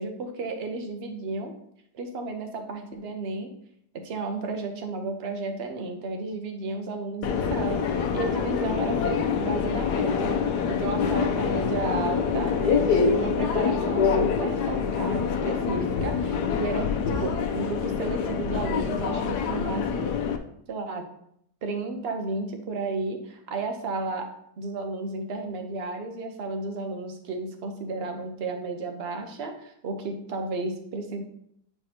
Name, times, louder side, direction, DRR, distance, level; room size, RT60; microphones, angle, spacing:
voice 1, 0.0-1.5 1.9-3.5 3.9-10.4 10.7-20.1 20.7-21.1 21.6-24.3 24.6-31.2, right 3 dB, 45° right, 5 dB, 0.9 m, -33 dB
Subway metro underground, 7.2-20.4, left 6 dB, 80° left, 1.2 m, -26 dB
9.2 x 4.7 x 2.8 m, 0.72 s
omnidirectional pair, 1.8 m